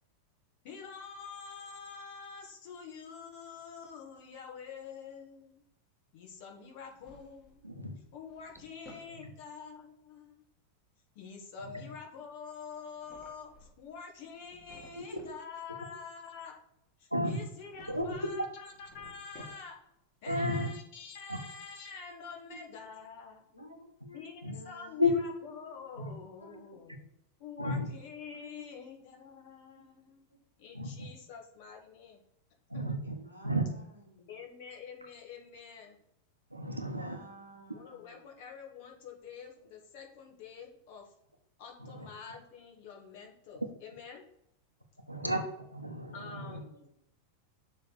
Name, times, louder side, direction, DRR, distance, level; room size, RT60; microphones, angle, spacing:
voice 1, 0.6-5.6 6.1-7.6 8.1-10.4 11.1-16.6 17.0-19.8 20.2-23.5 24.1-27.0 27.4-30.2 30.6-32.2 32.7-32.9 34.3-36.0 37.7-41.1 41.6-44.2 46.1-46.7, left 6 dB, 50° left, 1.7 m, -47 dB
Drawer open or close, 6.7-7.7 8.1-9.1 12.8-13.9 14.3-15.4 17.6-18.3 18.6-19.9, left 1 dB, 20° left, 2.3 m, -56 dB
voice 2, 7.6-8.0 9.1-9.2 11.6-11.9 15.1-15.2 17.1-17.4 17.9-18.5 20.3-20.7 21.3-21.4 24.4-24.6 25.0-25.1 26.0-26.1 27.6-27.9 30.7-30.9 32.7-33.2 33.4-33.6 36.5-37.2 41.8-42.1 45.1-45.4 45.7-46.6, left 1 dB, 85° right, 1.0 m, -32 dB
voice 3, 22.3-22.8 23.5-23.8 24.0-25.0 25.5-26.1 26.4-26.6 28.3-28.5 33.0-34.4 36.6-38.5 46.1-46.9, equal, 85° left, 1.9 m, -54 dB
6.7 x 3.6 x 6.3 m
figure-of-eight pair, 90°, 0 cm